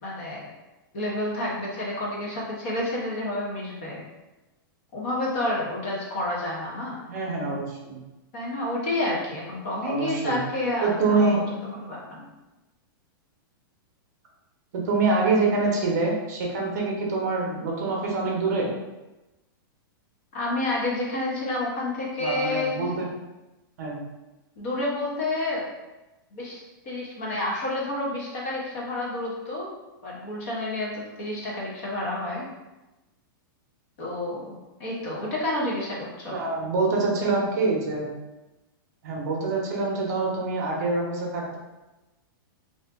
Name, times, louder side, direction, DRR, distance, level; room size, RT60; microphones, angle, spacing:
voice 1, 0.0-0.5 0.9-4.0 4.9-7.0 8.3-11.4 11.8-12.2 20.3-22.9 24.6-25.6 26.3-29.7 30.0-32.4 34.0-36.4, left 1 dB, 35° left, -3 dB, 0.8 m, -29 dB
voice 2, 7.1-8.0 9.8-10.4 10.8-11.4 14.7-18.7 22.2-23.1 23.8-24.0 36.3-38.1 39.0-41.6, right 3 dB, 45° right, -2 dB, 0.7 m, -25 dB
2.5 x 2.4 x 3.4 m, 1.0 s
supercardioid pair, 175°, 12 cm